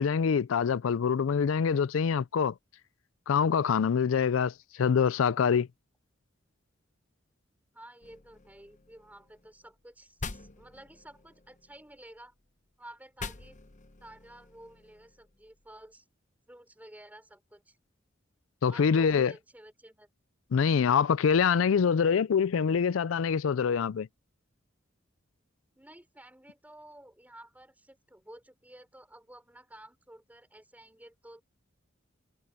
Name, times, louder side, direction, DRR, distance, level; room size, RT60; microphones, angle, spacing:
voice 1, 0.0-2.5 3.3-5.7 18.6-19.3 20.5-24.1, left 6 dB, 85° left, 0.4 m, -25 dB
voice 2, 7.7-12.3 12.8-13.6 14.0-16.1 16.5-17.8 18.7-20.1 25.7-31.4, right 1 dB, 10° right, 4.2 m, -52 dB
sound 1, 8.0-9.9 10.2-12.5 13.2-15.9, left 4 dB, 40° left, 1.1 m, -46 dB
head